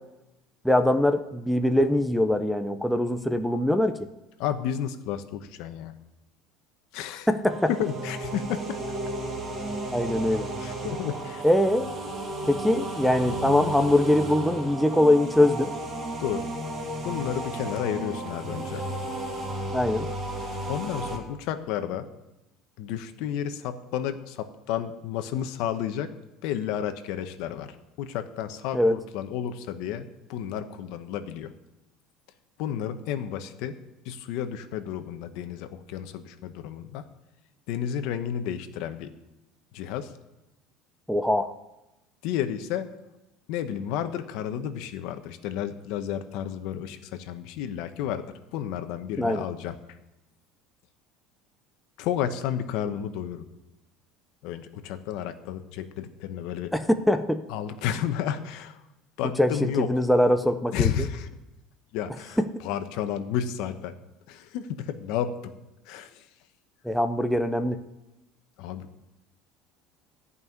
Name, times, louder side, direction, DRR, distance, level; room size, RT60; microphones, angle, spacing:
voice 1, 0.6-4.0 7.3-7.7 9.9-10.5 11.4-11.9 12.5-15.7 19.7-20.1 28.7-29.0 41.1-41.5 49.2-49.5 56.7-57.4 59.4-60.9 66.8-67.8, left 1 dB, ahead, 7 dB, 0.5 m, -22 dB
voice 2, 4.4-5.9 6.9-7.3 7.7-8.8 10.6-11.4 16.2-16.5 17.0-18.8 20.7-22.1 22.8-26.1 26.4-31.5 32.6-33.8 34.0-37.0 37.7-39.1 39.7-40.1 42.2-42.9 43.5-48.2 48.5-49.8 52.0-53.5 54.4-56.7 57.5-58.8 59.2-59.9 60.7-61.3 61.9-63.9 64.3-65.5 65.9-66.2 68.6-69.1, left 9 dB, 65° left, 9 dB, 1.1 m, -31 dB
sound 1, 7.4-21.2, right 1 dB, 20° right, 2.5 m, -34 dB
14.5 x 5.6 x 9.6 m, 0.96 s
cardioid pair, 150°, 0 cm